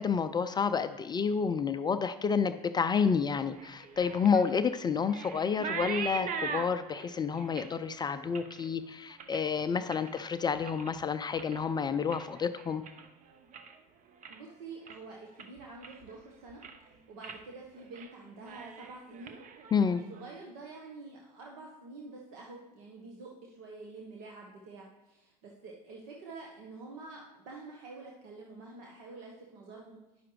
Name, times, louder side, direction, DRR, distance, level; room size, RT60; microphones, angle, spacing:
voice 1, 0.0-12.8 19.7-20.0, left 6 dB, 20° left, 11 dB, 0.3 m, -29 dB
sound 1, 3.5-10.2 10.5-11.0 11.3-13.8 14.1-14.5 14.9-15.0 15.4-16.2 16.5-16.9 17.2-17.4 17.8-18.1 18.4-20.2, right 6 dB, 40° right, 0.8 m, -42 dB
voice 2, 14.3-16.6 17.1-19.4 19.9-30.0, right 3 dB, 65° right, -1 dB, 1.1 m, -47 dB
10.0 x 5.8 x 3.1 m, 0.99 s
hypercardioid pair, 75°, 21 cm